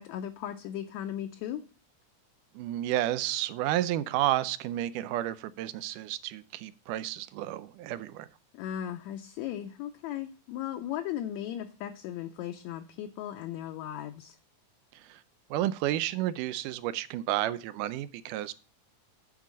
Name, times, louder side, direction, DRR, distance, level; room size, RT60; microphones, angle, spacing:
voice 1, 0.0-1.6 8.5-14.4, left 11 dB, 75° left, 5 dB, 1.8 m, -37 dB
voice 2, 2.6-8.3 15.1-15.2 15.5-18.5, right 13 dB, 90° right, 15 dB, 2.1 m, -31 dB
10.0 x 3.9 x 7.2 m, 0.37 s
omnidirectional pair, 3.6 m